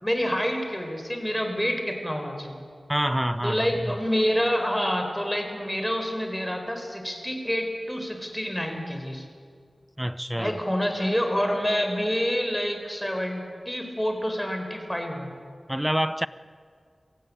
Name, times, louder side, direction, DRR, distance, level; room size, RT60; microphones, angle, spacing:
voice 1, 0.0-2.6 3.4-9.2 10.4-15.3, equal, 5° left, 5 dB, 4.5 m, -27 dB
voice 2, 2.9-4.0 10.0-10.6 15.7-16.3, equal, 10° right, 15 dB, 0.7 m, -27 dB
24.0 x 16.0 x 8.6 m, 2.1 s
cardioid pair, 45°, 0 cm